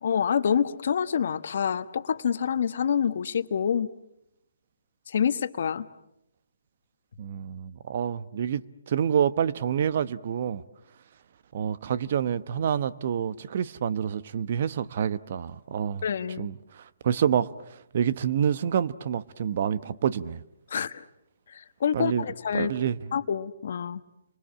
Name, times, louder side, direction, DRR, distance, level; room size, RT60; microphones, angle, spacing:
voice 1, 0.0-3.9 5.1-5.9 16.0-16.5 20.7-21.0 21.8-22.7 23.1-24.0, left 7 dB, 60° left, 1.3 m, -27 dB
voice 2, 7.2-10.6 11.5-16.0 16.4-16.6 17.0-17.5 17.9-20.4 21.9-22.3 22.5-23.0, right 8 dB, 50° right, 1.0 m, -27 dB
30.0 x 24.5 x 7.5 m
hypercardioid pair, 140°, 0 cm